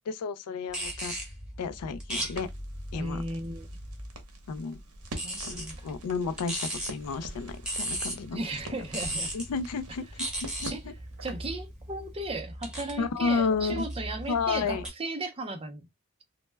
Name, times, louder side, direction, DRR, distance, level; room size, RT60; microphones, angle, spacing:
voice 1, 0.1-1.1 1.6-2.5 2.9-3.2 4.5-4.8 5.4-8.4 9.3-10.9 13.0-13.9 14.3-14.9, left 5 dB, 85° left, 0.4 m, -32 dB
sound 1, 0.7-4.2 5.0-14.9, right 1 dB, 5° right, 0.8 m, -38 dB
Crackle, 2.3-11.5, right 2 dB, 75° right, 0.7 m, -46 dB
voice 2, 2.9-3.7 5.2-5.9 8.3-9.3 10.7-10.8 11.2-15.9, right 2 dB, 25° right, 0.5 m, -36 dB
2.1 x 2.1 x 3.2 m
head